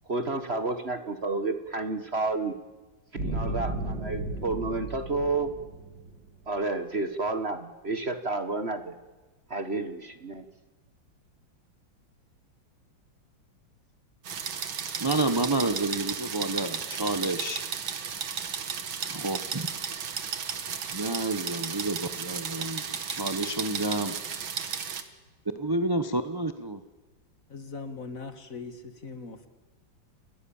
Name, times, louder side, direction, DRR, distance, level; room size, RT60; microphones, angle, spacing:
voice 1, 0.1-2.5 3.1-5.5 6.5-8.9 9.5-10.4, right 3 dB, 35° right, 9 dB, 1.5 m, -30 dB
sound 1, 3.2-6.4, right 2 dB, 70° right, 8.5 m, -34 dB
sound 2, 14.2-25.0, right 7 dB, 85° right, 2.5 m, -34 dB
voice 2, 15.0-17.7 19.1-19.7 20.9-24.1 25.6-26.8, right 2 dB, 15° right, 9 dB, 0.8 m, -29 dB
voice 3, 27.5-29.5, left 4 dB, 45° left, 10 dB, 2.1 m, -40 dB
29.0 x 20.5 x 7.2 m, 1.2 s
omnidirectional pair, 2.1 m